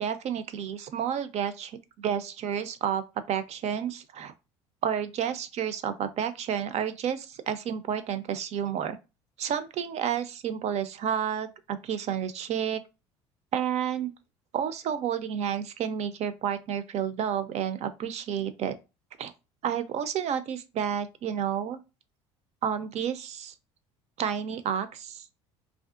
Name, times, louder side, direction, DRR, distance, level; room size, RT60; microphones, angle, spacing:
voice 1, 0.0-1.7 2.0-4.3 4.8-9.0 9.4-12.8 13.5-14.1 14.5-18.7 19.2-19.3 19.6-21.8 22.6-23.5 24.2-25.2, right 8 dB, 45° right, 0.4 m, -30 dB
2.5 x 2.3 x 2.4 m
hypercardioid pair, 65°, 15 cm